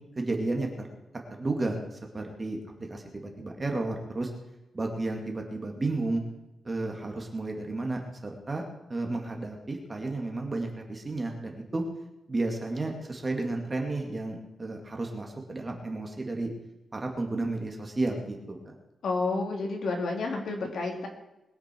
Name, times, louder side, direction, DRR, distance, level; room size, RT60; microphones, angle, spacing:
voice 1, 0.2-0.7 1.4-2.6 2.9-4.3 4.7-6.2 6.6-8.6 8.9-11.8 12.3-16.5 16.9-18.7, right 2 dB, 20° right, 2 dB, 2.2 m, -32 dB
voice 2, 19.0-21.1, left 3 dB, 60° left, 2 dB, 3.0 m, -30 dB
21.5 x 10.0 x 4.5 m, 0.96 s
wide cardioid pair, 180°, 0 cm